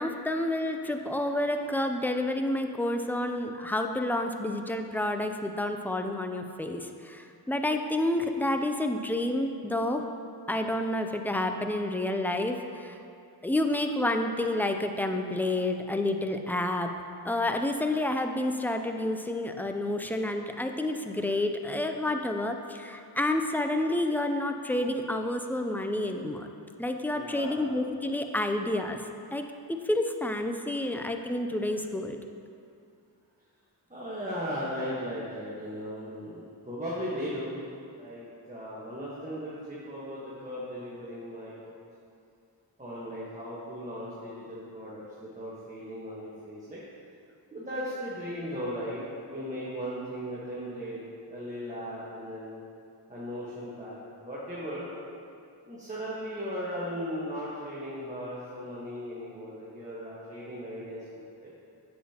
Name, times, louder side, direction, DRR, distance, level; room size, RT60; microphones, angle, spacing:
voice 1, 0.0-10.0 10.5-13.0 13.4-16.9 17.2-26.5 26.8-29.0 29.3-32.2, left 1 dB, 5° left, 5 dB, 0.4 m, -29 dB
voice 2, 27.1-27.7 33.9-37.6 37.9-41.8 42.8-46.8 47.5-51.0 51.3-52.6 53.1-54.9 55.6-61.5, equal, 20° right, -8 dB, 1.3 m, -37 dB
8.3 x 7.5 x 2.9 m, 2.4 s
wide cardioid pair, 90°, 41 cm